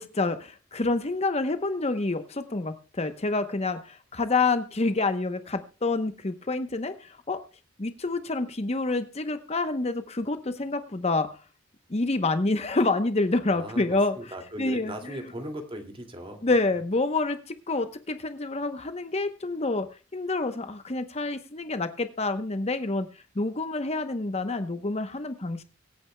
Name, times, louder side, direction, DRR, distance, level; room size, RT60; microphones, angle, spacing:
voice 1, 0.0-7.4 7.8-11.4 11.9-14.2 14.6-15.3 16.4-23.1 23.4-25.6, left 3 dB, 35° left, 10 dB, 0.8 m, -28 dB
voice 2, 13.5-16.7, right 1 dB, 25° right, 5 dB, 2.3 m, -38 dB
24.0 x 8.9 x 2.2 m, 0.33 s
head